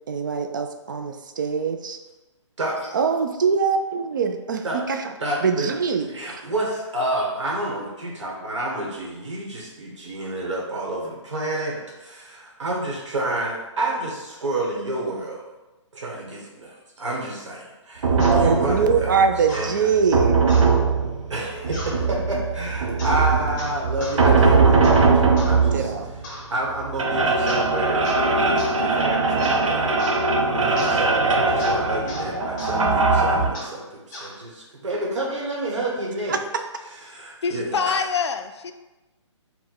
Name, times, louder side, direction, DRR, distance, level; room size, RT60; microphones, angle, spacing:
voice 1, 0.1-2.0 2.9-5.2 5.4-6.4 18.3-20.4 25.7-26.2 36.3-36.4, right 5 dB, 40° right, 6 dB, 0.4 m, -23 dB
voice 2, 2.6-2.9 4.6-4.8 5.2-5.7 6.0-15.4 15.9-19.1 19.5-19.7 21.3-25.9 26.5-36.4 37.1-38.0, right 1 dB, 70° right, -3 dB, 1.3 m, -29 dB
sound 1, 18.0-33.5, right 4 dB, 85° right, 0.7 m, -20 dB
sound 2, 18.2-18.4 19.5-19.7 20.5-20.7 21.7-22.0 23.0-23.2 23.6-24.2 24.8-25.0 25.4-25.6 26.2-26.5 27.5-27.7 28.0-28.3 28.6-28.8 29.4-29.6 30.0-30.2 30.8-31.0 31.6-31.8 32.1-32.3 32.6-32.8 33.5-33.8 34.1-34.3, left 1 dB, 15° left, 0.7 m, -37 dB
voice 3, 37.4-38.7, left 6 dB, 60° left, 8 dB, 0.4 m, -25 dB
4.4 x 2.2 x 4.3 m, 1.1 s
hypercardioid pair, 165°, 16 cm